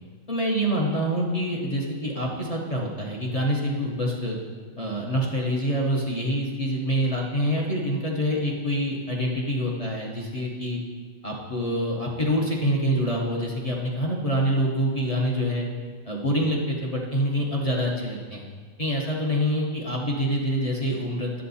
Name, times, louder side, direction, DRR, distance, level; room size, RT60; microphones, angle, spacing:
voice 1, 0.3-4.4 4.8-10.8 11.2-15.7 16.1-18.4 18.8-21.4, equal, 35° left, -1 dB, 0.6 m, -26 dB
9.9 x 7.4 x 4.1 m, 1.5 s
omnidirectional pair, 2.1 m